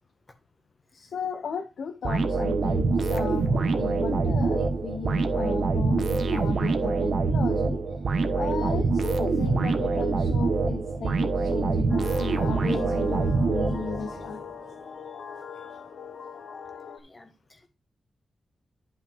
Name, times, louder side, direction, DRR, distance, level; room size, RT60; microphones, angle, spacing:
voice 1, 0.9-7.8 8.3-14.4 15.5-15.6, left 6 dB, 80° left, 6 dB, 0.9 m, -35 dB
sound 1, 2.0-14.2, right 3 dB, 60° right, 1.2 m, -25 dB
sound 2, 11.9-17.0, left 6 dB, 55° left, 1.1 m, -41 dB
voice 2, 17.0-17.7, left 2 dB, 20° left, 7 dB, 1.5 m, -55 dB
11.5 x 5.6 x 3.6 m, 0.27 s
wide cardioid pair, 160°, 0 cm